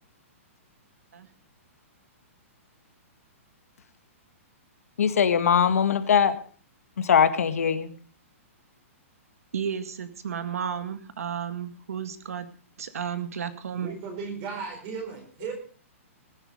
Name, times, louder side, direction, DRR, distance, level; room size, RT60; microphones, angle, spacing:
voice 1, 5.0-6.4 7.0-7.9, left 7 dB, 85° left, 10 dB, 1.8 m, -21 dB
voice 2, 9.5-12.5 12.8-13.9, right 8 dB, 85° right, 11 dB, 2.0 m, -33 dB
voice 3, 13.7-15.5, right 5 dB, 25° right, 5 dB, 4.3 m, -36 dB
19.5 x 10.0 x 5.2 m, 0.40 s
hypercardioid pair, 180°, 8 cm